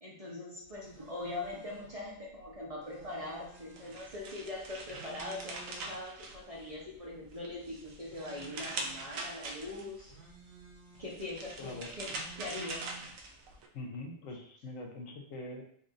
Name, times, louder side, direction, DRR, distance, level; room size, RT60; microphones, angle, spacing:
voice 1, 0.0-10.1 11.0-12.1 12.3-12.9, left 2 dB, 30° right, -5 dB, 0.8 m, -42 dB
sound 1, 0.6-13.6, right 3 dB, 65° right, 1.4 m, -56 dB
sound 2, 3.6-6.9 7.3-10.0 11.0-13.7, right 2 dB, 80° right, 1.0 m, -43 dB
voice 2, 11.6-11.9 13.7-15.6, left 2 dB, 80° left, 2 dB, 1.1 m, -43 dB
4.2 x 2.6 x 3.7 m, 0.63 s
omnidirectional pair, 1.4 m